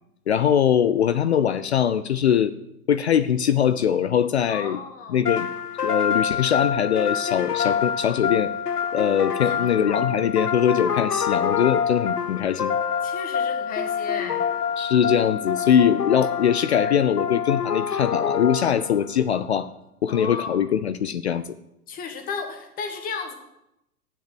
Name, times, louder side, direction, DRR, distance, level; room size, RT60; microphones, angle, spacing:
voice 1, 0.3-2.5 2.9-4.8 5.1-5.5 5.8-8.5 8.9-12.8 14.8-19.7 20.0-21.4, left 9 dB, 45° left, 14 dB, 0.5 m, -22 dB
voice 2, 4.5-5.2 9.5-10.1 13.0-14.4 16.8-17.0 20.1-20.7 21.9-23.3, left 5 dB, 20° left, 5 dB, 1.5 m, -34 dB
sound 1, 5.3-19.1, left 7 dB, 80° left, 0.9 m, -26 dB
9.2 x 7.5 x 7.8 m, 0.83 s
figure-of-eight pair, 115°, 46 cm